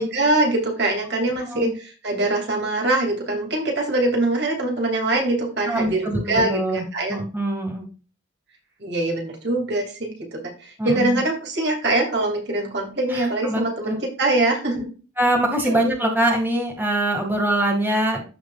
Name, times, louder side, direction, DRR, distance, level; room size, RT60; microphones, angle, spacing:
voice 1, 0.0-7.2 8.8-14.8 15.6-15.8, right 2 dB, 55° right, 0 dB, 2.6 m, -23 dB
voice 2, 5.7-7.9 10.8-11.2 13.1-13.9 14.7-14.8 15.2-18.2, right 1 dB, 10° right, 0 dB, 2.1 m, -23 dB
14.0 x 4.8 x 2.4 m, 0.34 s
head